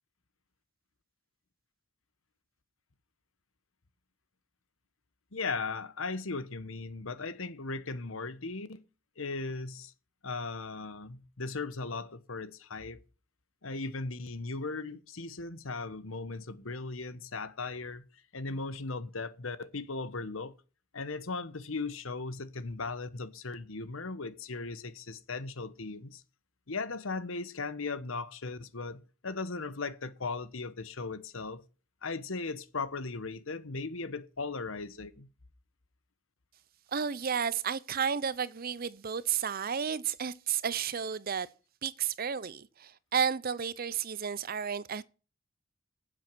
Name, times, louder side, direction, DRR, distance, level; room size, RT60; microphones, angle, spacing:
voice 1, 5.3-8.8 9.2-9.9 10.2-13.0 13.6-18.0 18.3-20.5 20.9-26.2 26.7-31.6 32.0-35.3, left 3 dB, 75° left, 1.1 m, -37 dB
voice 2, 36.9-41.5 41.8-45.0, right 7 dB, 45° right, 0.6 m, -32 dB
10.0 x 7.7 x 6.2 m
head